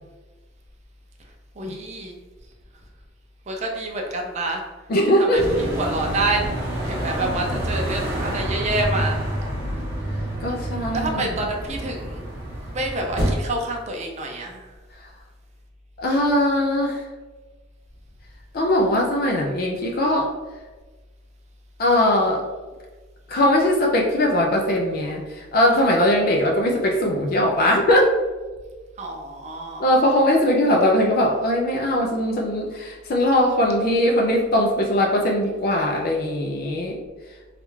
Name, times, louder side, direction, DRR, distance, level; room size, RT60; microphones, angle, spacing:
voice 1, 1.6-2.1 3.5-4.6 5.2-6.4 6.9-9.2 10.9-12.2 12.7-14.6 29.0-29.8, right 2 dB, 35° right, 1 dB, 0.5 m, -27 dB
voice 2, 4.9-5.6 10.4-11.4 16.0-17.0 18.5-20.3 21.8-22.5 23.3-28.1 29.8-37.0, left 1 dB, 50° left, 0 dB, 0.4 m, -20 dB
sound 1, 5.3-13.4, right 1 dB, 15° right, 1.1 m, -28 dB
3.2 x 2.4 x 3.0 m, 1.3 s
head